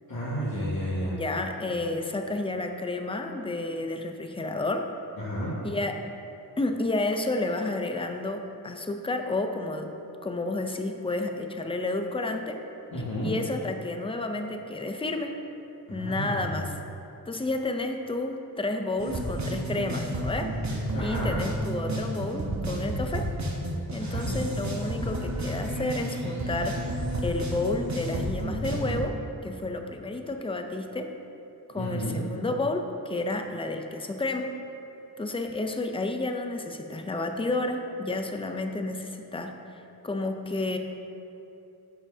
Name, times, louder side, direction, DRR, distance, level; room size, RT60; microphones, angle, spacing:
voice 1, 0.1-1.1 5.2-5.5 12.9-13.3 15.9-16.6 20.9-21.4 24.0-24.5 31.8-32.2, equal, 65° left, -10 dB, 1.8 m, -32 dB
voice 2, 1.0-4.9 5.6-6.0 6.6-9.9 10.2-12.6 13.2-15.4 15.9-16.8 17.3-20.5 21.0-23.3 23.9-26.9 27.2-29.2 29.4-31.1 31.7-34.5 35.2-39.6 40.0-40.8, left 2 dB, 15° left, 5 dB, 0.5 m, -31 dB
sound 1, 19.0-29.0, right 1 dB, 45° right, 1.1 m, -31 dB
11.0 x 7.6 x 2.7 m, 2.8 s
wide cardioid pair, 155°, 38 cm